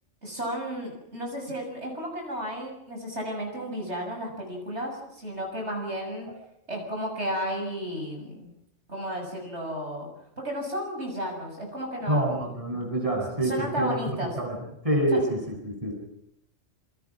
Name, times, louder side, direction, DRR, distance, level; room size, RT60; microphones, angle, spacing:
voice 1, 0.2-6.3 6.7-8.5 8.9-10.1 10.4-12.5 13.4-14.3 15.1-15.2, equal, 60° right, 1 dB, 7.2 m, -33 dB
voice 2, 12.1-14.6 14.8-15.9, right 1 dB, 25° right, 1 dB, 7.3 m, -27 dB
28.0 x 25.5 x 6.1 m, 0.78 s
omnidirectional pair, 1.3 m